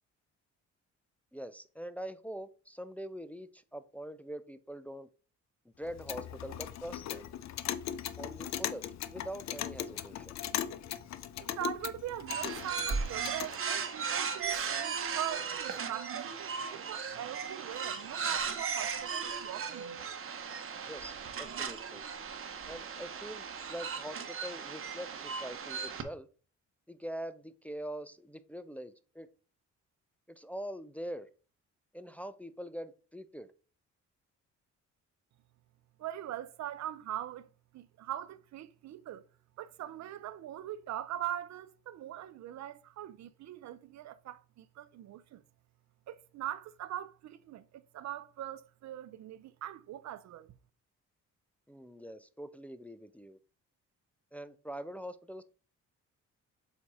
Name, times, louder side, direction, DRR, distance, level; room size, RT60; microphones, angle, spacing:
voice 1, 1.3-5.1 5.8-7.3 8.2-10.3 20.9-22.0 22.7-26.3 26.9-29.3 30.3-31.3 31.9-33.5 51.7-53.4 54.3-55.4, equal, 5° left, 0.4 m, -43 dB
Clock, 5.8-13.6, left 10 dB, 65° left, 0.6 m, -39 dB
voice 2, 11.4-20.0 36.0-39.2 39.6-45.4 46.1-50.5, right 11 dB, 65° right, 0.5 m, -41 dB
sound 1, 12.3-26.0, right 6 dB, 45° right, 1.0 m, -37 dB
7.2 x 2.8 x 4.7 m
cardioid pair, 90°, 30 cm